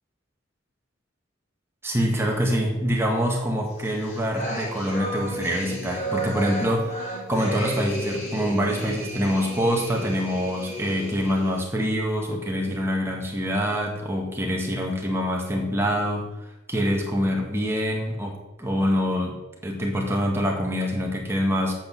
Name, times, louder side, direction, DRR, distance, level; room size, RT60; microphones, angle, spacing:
voice 1, 1.8-7.0 7.3-16.3 16.7-21.8, equal, 15° right, 0 dB, 2.0 m, -25 dB
sound 1, 3.8-11.6, right 1 dB, 35° left, 3.8 m, -33 dB
8.4 x 6.5 x 7.7 m, 1.0 s
head